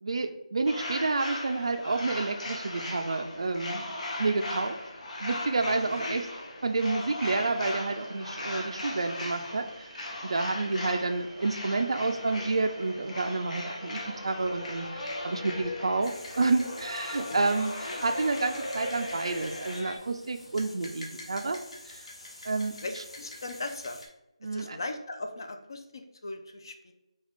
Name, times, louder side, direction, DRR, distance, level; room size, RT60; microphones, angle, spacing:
voice 1, 0.0-3.9 4.2-4.8 5.2-6.3 6.6-9.6 10.2-21.6 21.9-22.1 22.4-23.0 24.4-24.8, right 3 dB, 50° right, 5 dB, 0.3 m, -29 dB
sound 1, 0.7-20.0, left 1 dB, 75° left, 1.2 m, -38 dB
sound 2, 7.6-15.6, right 17 dB, 20° right, 0.8 m, -57 dB
sound 3, 16.0-24.1, left 1 dB, 55° left, 0.9 m, -47 dB
voice 2, 22.8-24.0 24.5-26.9, left 2 dB, 40° left, 5 dB, 0.5 m, -39 dB
4.0 x 3.3 x 3.5 m, 0.94 s
figure-of-eight pair, 175°, 4 cm